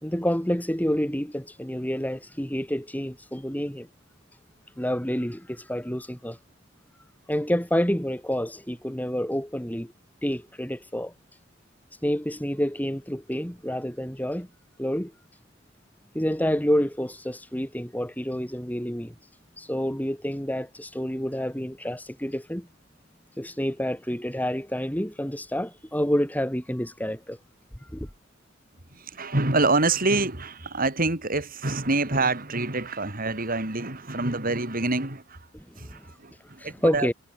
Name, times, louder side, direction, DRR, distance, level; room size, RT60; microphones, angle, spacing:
voice 1, 0.0-3.9 4.8-6.4 7.3-9.9 10.2-11.1 12.0-14.5 14.8-15.1 16.1-19.1 19.6-22.7 23.4-27.4 27.8-28.1 35.5-36.1 36.6-37.1, equal, 10° left, 4.8 m, -28 dB
voice 2, 28.9-35.4 35.8-37.1, right 3 dB, 45° right, 3.7 m, -26 dB
head